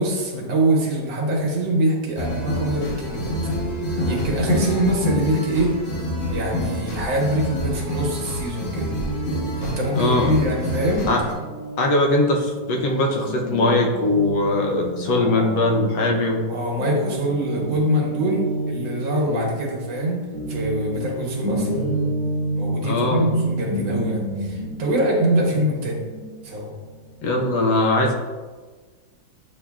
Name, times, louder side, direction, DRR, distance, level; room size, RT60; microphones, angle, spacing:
voice 1, 0.0-3.4 4.1-5.7 6.3-8.9 9.6-11.1 15.0-15.8 16.4-21.8 22.5-26.0 26.4-26.7, right 1 dB, 80° right, -2 dB, 1.7 m, -24 dB
sound 1, 2.2-11.3, left 1 dB, 50° left, 1.2 m, -27 dB
Guitar, 8.8-16.5 16.8-27.2, right 1 dB, 90° left, 1.7 m, -30 dB
voice 2, 9.9-10.3 11.1-11.2 11.8-16.4 19.3-19.5 22.8-23.3 27.2-28.1, left 2 dB, 70° left, 1 dB, 1.2 m, -20 dB
8.2 x 2.8 x 2.3 m, 1.4 s
omnidirectional pair, 2.0 m